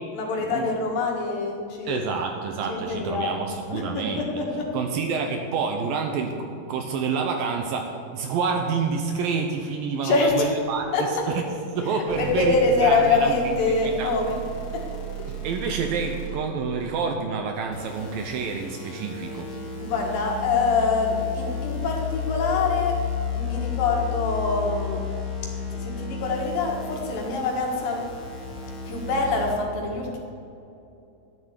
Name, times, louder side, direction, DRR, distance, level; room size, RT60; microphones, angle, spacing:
voice 1, 0.1-2.1 2.7-3.4 3.7-4.7 10.0-10.5 10.9-11.2 11.8-14.4 14.7-14.9 19.8-25.1 25.4-28.5 28.8-30.2, left 3 dB, 70° left, 0 dB, 3.3 m, -25 dB
voice 2, 1.9-4.3 4.7-10.9 11.3-11.4 11.8-13.6 13.8-14.1 15.3-19.5, right 5 dB, 75° right, 4 dB, 2.4 m, -28 dB
sound 1, 12.1-16.6 17.7-29.6, left 4 dB, 40° left, 2.2 m, -33 dB
12.0 x 7.3 x 8.2 m, 2.7 s
omnidirectional pair, 4.4 m